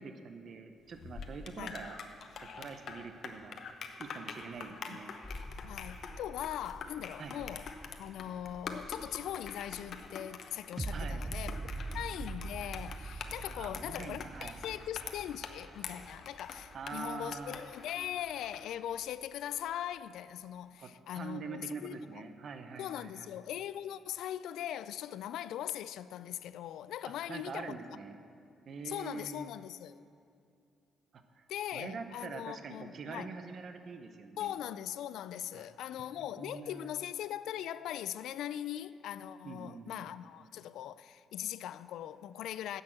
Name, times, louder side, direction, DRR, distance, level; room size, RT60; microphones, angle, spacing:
voice 1, 0.0-2.0 2.4-3.6 4.0-5.1 7.2-7.6 10.9-11.2 13.6-14.7 16.7-17.6 20.8-23.3 27.3-28.2 28.7-29.5 31.1-31.5 31.7-34.6 35.5-35.7 36.2-36.9 39.4-40.1, right 5 dB, 55° right, 0.8 m, -44 dB
sound 1, 0.9-18.7, left 6 dB, 60° left, 0.8 m, -46 dB
sound 2, 5.2-10.1, left 2 dB, 10° left, 1.3 m, -50 dB
voice 2, 5.6-7.6 8.0-11.6 11.9-22.0 22.8-27.8 28.8-30.0 31.5-33.3 34.4-42.8, left 11 dB, 80° left, 0.3 m, -40 dB
sound 3, 10.8-17.8 18.3-18.4, right 3 dB, 15° right, 0.4 m, -42 dB
10.5 x 6.5 x 7.4 m
cardioid pair, 90°, 0 cm